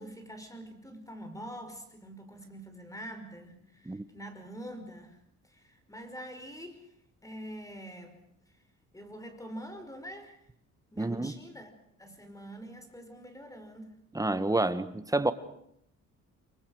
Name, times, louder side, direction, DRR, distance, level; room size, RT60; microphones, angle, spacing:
voice 1, 0.0-5.2 5.4-6.9 7.2-8.2 8.9-10.4 10.9-14.0, equal, 10° left, 5.3 m, -45 dB
voice 2, 11.0-11.4 14.1-15.3, right 2 dB, 10° right, 1.6 m, -28 dB
29.0 x 23.0 x 6.5 m
cardioid pair, 90°, 30 cm